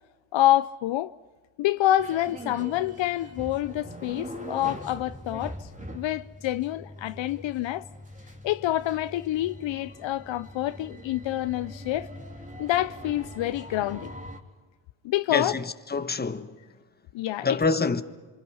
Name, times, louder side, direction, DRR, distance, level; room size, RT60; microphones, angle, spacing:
voice 1, 0.3-1.1 1.6-7.9 8.4-12.1 12.6-14.1 15.0-15.6 17.1-17.6, left 14 dB, 65° left, 0.7 m, -27 dB
sound 1, 2.0-14.4, equal, 15° right, 3.7 m, -42 dB
voice 2, 15.3-16.6 17.4-18.0, left 4 dB, 20° left, 1.4 m, -26 dB
27.0 x 26.0 x 5.7 m
cardioid pair, 85°, 49 cm